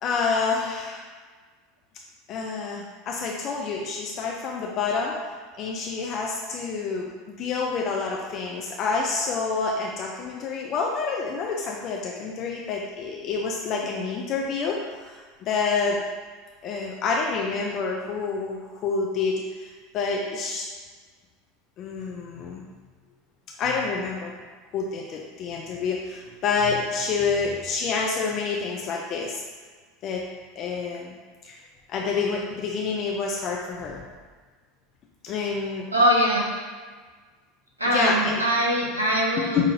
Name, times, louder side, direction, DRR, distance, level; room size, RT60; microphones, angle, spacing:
voice 1, 0.0-1.0 2.3-5.1 5.6-16.0 16.6-20.7 21.8-22.6 23.6-24.3 24.7-29.4 30.0-30.2 30.6-31.1 31.4-31.6 31.9-34.0 35.2-35.9 37.9-38.4 39.4-39.7, left 4 dB, 40° left, -1 dB, 0.4 m, -28 dB
voice 2, 35.9-36.4 37.8-39.6, equal, 85° right, -3 dB, 0.7 m, -22 dB
5.3 x 2.4 x 2.8 m, 1.5 s
figure-of-eight pair, 75°, 0 cm